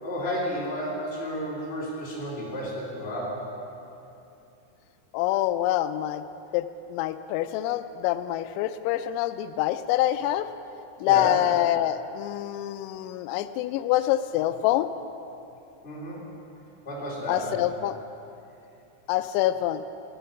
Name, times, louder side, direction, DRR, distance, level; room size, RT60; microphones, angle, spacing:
voice 1, 0.0-3.4 11.0-11.3 15.8-16.2 16.8-17.4, equal, 15° left, -7 dB, 2.8 m, -32 dB
voice 2, 5.1-6.2 6.5-10.5 11.0-14.9 17.3-18.0 19.1-19.8, left 13 dB, 90° left, 11 dB, 3.3 m, -26 dB
16.0 x 11.5 x 5.7 m, 2.8 s
omnidirectional pair, 5.9 m